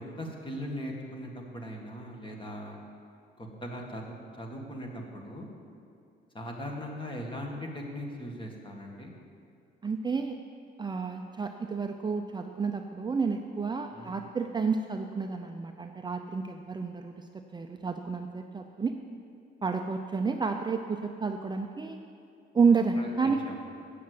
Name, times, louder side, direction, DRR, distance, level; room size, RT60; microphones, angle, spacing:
voice 1, 0.0-2.8 3.4-5.5 6.3-9.1 13.9-14.1 22.9-23.8, equal, 25° left, 1 dB, 1.9 m, -39 dB
voice 2, 9.8-10.4 10.8-19.0 19.6-22.0 22.5-23.5, right 5 dB, 20° right, 5 dB, 0.5 m, -30 dB
8.4 x 7.2 x 7.9 m, 2.5 s
cardioid pair, 90°, 20 cm